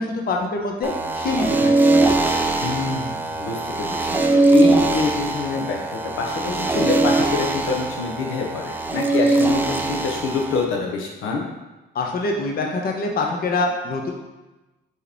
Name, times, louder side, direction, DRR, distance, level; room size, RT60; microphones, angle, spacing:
voice 1, 0.0-1.9 11.9-14.1, left 2 dB, 50° left, 1 dB, 0.8 m, -25 dB
sound 1, 0.8-10.6, right 2 dB, 10° right, 0.4 m, -21 dB
voice 2, 2.6-11.5, left 4 dB, 80° left, 0 dB, 0.7 m, -26 dB
4.5 x 3.0 x 3.4 m, 1.1 s
cardioid pair, 90°, 20 cm